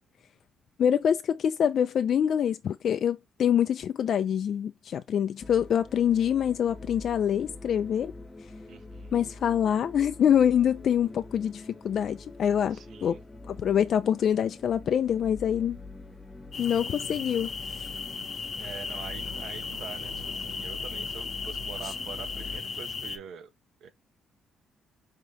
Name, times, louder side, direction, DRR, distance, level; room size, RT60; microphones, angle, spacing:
voice 1, 0.8-8.1 9.1-13.2 13.5-15.8 16.6-17.8, left 9 dB, 60° left, 0.3 m, -25 dB
sound 1, 5.4-22.6, left 3 dB, 15° left, 1.1 m, -45 dB
voice 2, 8.7-9.1 12.7-13.2 18.6-23.5 23.8-23.9, right 7 dB, 70° right, 1.0 m, -44 dB
sound 2, 16.5-23.2, left 5 dB, 45° left, 0.7 m, -36 dB
4.9 x 3.7 x 2.8 m
cardioid pair, 90°, 0 cm